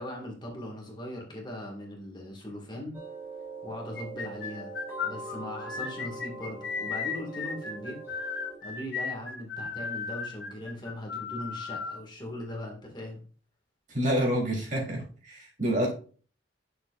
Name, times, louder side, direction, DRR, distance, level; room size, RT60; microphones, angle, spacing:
voice 1, 0.0-3.0 3.6-4.7 5.0-8.0 8.6-13.2, left 1 dB, 25° left, 0 dB, 2.0 m, -39 dB
sound 1, 2.9-8.6, right 2 dB, 15° right, 3.4 m, -42 dB
sound 2, 4.0-12.0, left 5 dB, 70° left, 1.8 m, -35 dB
voice 2, 13.9-15.9, equal, 45° right, -2 dB, 3.7 m, -28 dB
9.4 x 6.7 x 2.5 m, 0.39 s
head